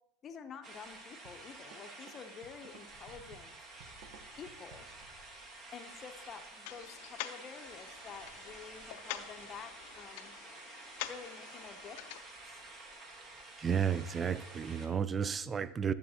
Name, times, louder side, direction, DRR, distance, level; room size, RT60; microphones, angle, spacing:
voice 1, 0.2-3.7 4.4-4.9 5.7-10.3 11.1-12.0, left 6 dB, 30° left, 7 dB, 0.7 m, -49 dB
sound 1, 0.6-14.9, right 2 dB, 40° right, 1.4 m, -51 dB
sound 2, 1.2-5.1, right 5 dB, 60° right, 0.7 m, -57 dB
sound 3, 6.6-12.2, left 13 dB, 65° left, 0.5 m, -46 dB
voice 2, 13.6-15.9, right 7 dB, 20° right, 16 dB, 0.3 m, -32 dB
11.0 x 6.9 x 2.8 m, 0.96 s
supercardioid pair, 115°, 0 cm